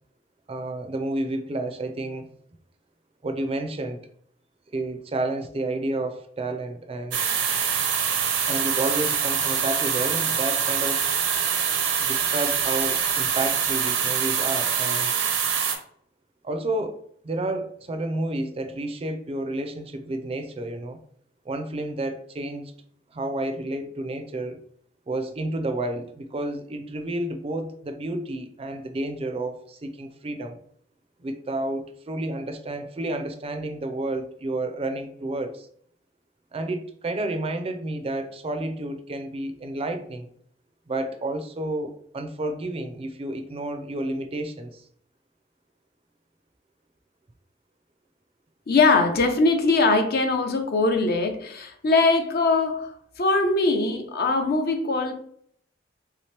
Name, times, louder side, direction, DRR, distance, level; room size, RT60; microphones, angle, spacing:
voice 1, 0.5-2.3 3.2-4.0 4.7-7.2 8.5-11.1 12.0-15.1 16.4-17.0 17.2-21.0 21.5-22.7 23.1-24.6 25.1-30.6 31.2-35.7 36.5-40.3 40.9-44.8, right 2 dB, 30° right, 6 dB, 0.4 m, -30 dB
sound 1, 7.1-15.7, right 7 dB, 85° right, 0.7 m, -24 dB
voice 2, 48.7-52.9 53.2-55.1, left 3 dB, 55° left, 6 dB, 0.6 m, -21 dB
3.4 x 2.8 x 3.2 m, 0.63 s
head